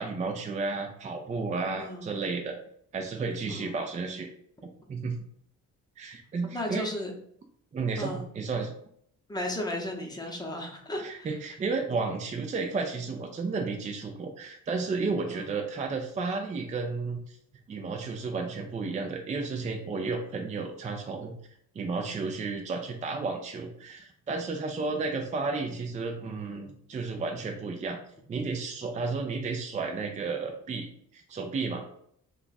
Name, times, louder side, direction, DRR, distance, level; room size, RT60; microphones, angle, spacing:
voice 1, 0.0-2.6 2.9-4.3 4.9-5.1 6.0-6.9 7.7-8.7 11.0-17.4 17.7-21.3 21.7-28.0 28.3-31.8, right 4 dB, 25° right, 3 dB, 0.4 m, -32 dB
voice 2, 1.8-2.2 3.5-3.8 6.5-7.1 8.0-8.3 9.3-11.3 15.3-15.5 24.9-25.1, left 1 dB, 15° left, 0 dB, 0.8 m, -35 dB
2.4 x 2.3 x 3.9 m, 0.66 s
cardioid pair, 90°, 30 cm